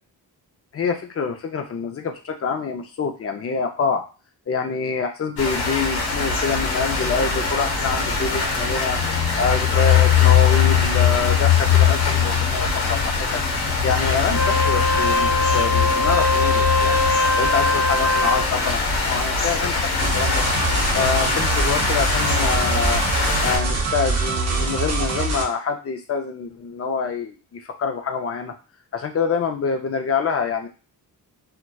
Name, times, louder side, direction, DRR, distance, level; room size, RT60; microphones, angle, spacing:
voice 1, 0.7-4.0 4.5-9.0 9.4-13.4 13.8-17.0 17.4-20.4 20.9-23.0 23.4-28.5 28.9-30.7, left 5 dB, 40° left, 5 dB, 0.5 m, -26 dB
sound 1, 5.4-23.6, left 6 dB, 90° left, 0.8 m, -21 dB
Wind instrument woodwind instrument, 14.2-18.5, left 2 dB, 60° left, 0.9 m, -21 dB
sound 2, 20.0-25.4, right 3 dB, 45° right, 0.6 m, -24 dB
2.7 x 2.2 x 2.2 m, 0.34 s
cardioid pair, 100°, 38 cm